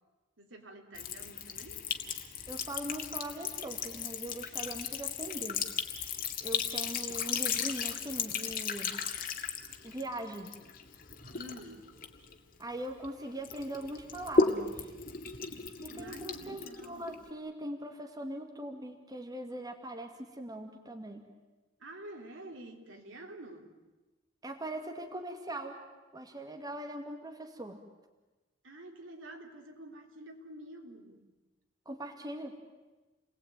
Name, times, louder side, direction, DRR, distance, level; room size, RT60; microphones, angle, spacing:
voice 1, 0.4-1.8 11.3-11.9 15.9-17.1 21.8-23.8 28.6-31.2, right 1 dB, 70° right, 2 dB, 3.8 m, -48 dB
Sink (filling or washing) / Trickle dribble, 0.9-13.1 13.4-17.3, left 5 dB, 45° left, 2.2 m, -35 dB
voice 2, 2.5-5.6 6.4-9.0 9.8-10.5 12.6-14.9 15.8-21.2 24.4-25.8 26.1-27.8 31.9-32.6, right 1 dB, 20° right, 3 dB, 2.3 m, -41 dB
30.0 x 20.0 x 9.2 m, 1.2 s
head